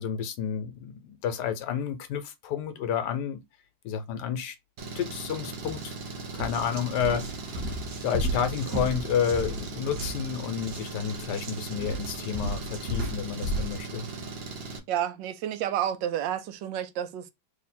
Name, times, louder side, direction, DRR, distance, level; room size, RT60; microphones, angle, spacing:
voice 1, 0.0-3.4 3.8-4.6 4.9-6.0 6.3-7.5 8.0-14.1, left 8 dB, 75° left, 1.2 m, -30 dB
Engine, 4.8-14.8, right 4 dB, 50° right, 0.7 m, -39 dB
sound 1, 5.7-5.9 6.3-13.8, right 1 dB, 65° right, 1.4 m, -34 dB
voice 2, 14.9-17.3, right 10 dB, 90° right, 1.3 m, -30 dB
3.2 x 2.8 x 4.2 m
omnidirectional pair, 1.9 m